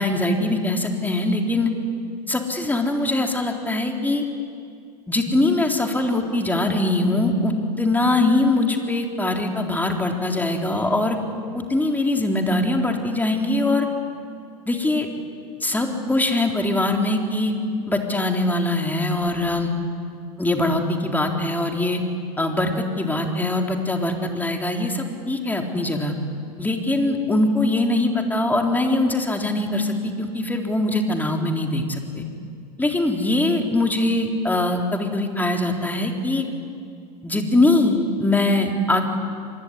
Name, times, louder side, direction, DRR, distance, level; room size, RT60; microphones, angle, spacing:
voice 1, 0.0-1.7 2.3-4.2 5.1-11.2 11.5-13.9 14.7-15.1 15.6-17.5 17.9-19.7 20.4-22.0 22.4-26.1 26.6-32.2 32.8-36.5 37.2-39.0, left 2 dB, 10° left, 2 dB, 3.8 m, -22 dB
25.5 x 21.0 x 10.0 m, 2.3 s
hypercardioid pair, 85°, 21 cm